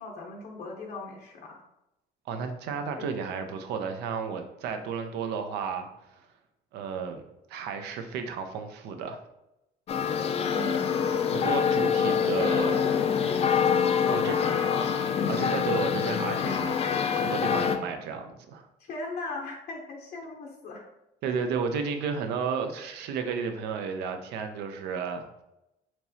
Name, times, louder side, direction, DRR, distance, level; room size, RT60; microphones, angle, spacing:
voice 1, 0.0-1.6 3.0-3.1 10.5-10.8 12.0-15.0 18.8-20.9, left 2 dB, 65° left, -1 dB, 0.7 m, -38 dB
voice 2, 2.3-6.2 6.7-7.2 7.5-9.2 11.3-12.8 14.1-14.4 15.3-16.8 17.1-18.7 21.2-25.4, right 6 dB, 85° right, 6 dB, 0.6 m, -32 dB
sound 1, 9.9-17.8, left 7 dB, 35° left, 0.4 m, -25 dB
4.5 x 2.9 x 2.7 m, 0.88 s
cardioid pair, 110°, 17 cm